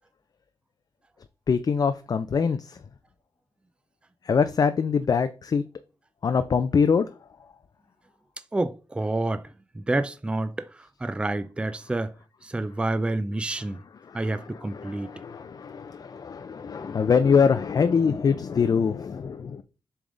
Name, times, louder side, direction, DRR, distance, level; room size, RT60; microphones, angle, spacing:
voice 1, 1.5-2.8 4.2-5.6 6.2-7.1 13.6-19.6, left 6 dB, 45° left, 0.4 m, -24 dB
voice 2, 8.5-9.4 9.9-10.7 11.0-12.1 12.5-13.8 14.1-15.1, right 2 dB, 10° right, 0.4 m, -28 dB
7.0 x 3.5 x 3.8 m
cardioid pair, 90°, 9 cm